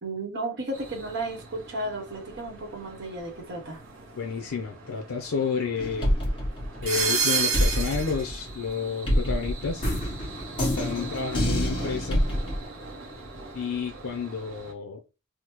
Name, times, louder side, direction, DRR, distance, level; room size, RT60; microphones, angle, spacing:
voice 1, 0.0-3.8, right 2 dB, 55° right, 0.9 m, -34 dB
sound 1, 0.7-14.7, right 5 dB, 80° right, 0.9 m, -35 dB
voice 2, 4.2-6.1 6.8-9.8 10.6-12.2 13.5-15.0, left 5 dB, 85° left, 0.5 m, -30 dB
sound 2, 5.8-7.2 7.5-12.6, equal, 25° left, 1.1 m, -27 dB
3.5 x 2.0 x 2.9 m
head